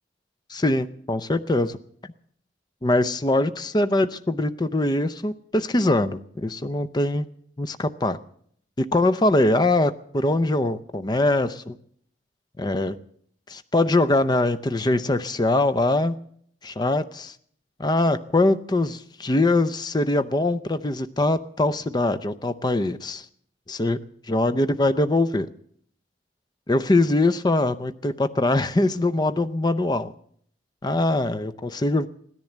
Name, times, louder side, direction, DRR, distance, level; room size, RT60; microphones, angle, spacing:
voice 1, 0.5-1.8 2.8-7.2 7.6-8.2 8.8-11.8 12.6-13.0 13.5-16.2 16.6-17.3 17.8-23.2 23.7-24.0 24.3-25.5 26.7-30.1 30.8-32.1, left 2 dB, 25° left, 12 dB, 0.6 m, -22 dB
16.5 x 10.5 x 7.9 m, 0.64 s
head